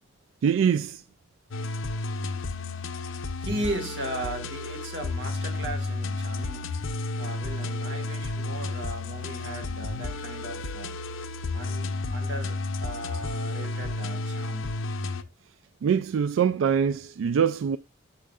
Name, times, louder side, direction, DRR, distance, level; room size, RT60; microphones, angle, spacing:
voice 1, 0.4-1.0 15.8-17.8, right 7 dB, 80° right, 0.3 m, -23 dB
sound 1, 1.5-15.2, left 3 dB, 90° left, 0.7 m, -32 dB
voice 2, 3.4-6.7 7.2-11.0 11.5-14.7, right 1 dB, 60° right, 2.1 m, -37 dB
8.7 x 6.5 x 2.4 m
head